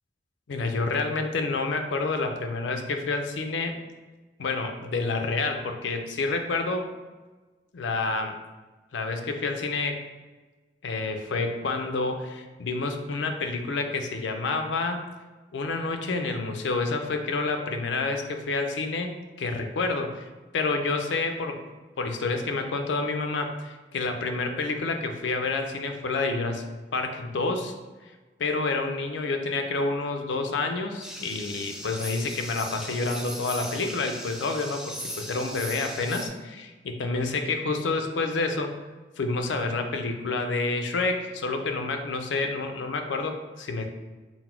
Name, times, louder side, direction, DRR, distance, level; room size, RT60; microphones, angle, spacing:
voice 1, 0.5-3.7 4.4-6.9 7.7-8.3 8.9-10.0 10.8-15.0 15.5-19.1 19.4-20.3 20.5-21.6 22.0-26.6 26.9-27.8 28.4-38.7 39.2-43.9, left 3 dB, 85° left, 5 dB, 0.5 m, -28 dB
sound 1, 31.0-36.3, equal, 5° right, 0.4 m, -38 dB
4.0 x 2.1 x 4.4 m, 1.3 s
head